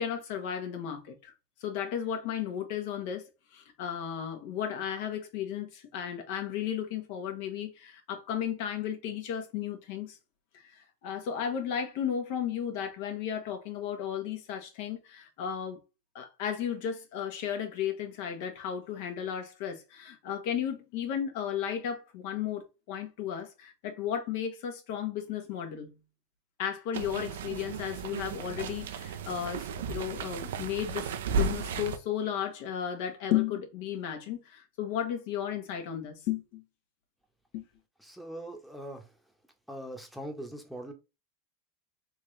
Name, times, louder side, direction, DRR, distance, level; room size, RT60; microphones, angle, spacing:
voice 1, 0.0-1.3 1.6-3.2 3.5-10.2 10.6-15.8 16.1-25.9 26.6-36.6 37.5-37.6, left 9 dB, 65° left, 1.2 m, -34 dB
sound 1, 26.9-32.0, right 4 dB, 80° right, 0.5 m, -34 dB
voice 2, 38.0-39.1 39.7-40.9, right 1 dB, ahead, 1.0 m, -41 dB
3.5 x 2.8 x 3.2 m
hypercardioid pair, 110°, 0 cm